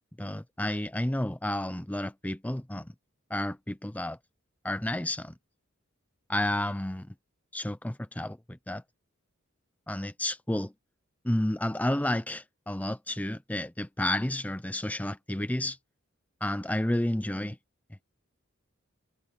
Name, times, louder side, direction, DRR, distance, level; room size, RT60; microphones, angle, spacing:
voice 1, 0.2-2.9 3.3-4.2 4.6-5.3 6.3-7.1 7.5-8.8 9.9-10.7 11.2-15.8 16.4-17.6, left 1 dB, 5° left, 0.6 m, -31 dB
head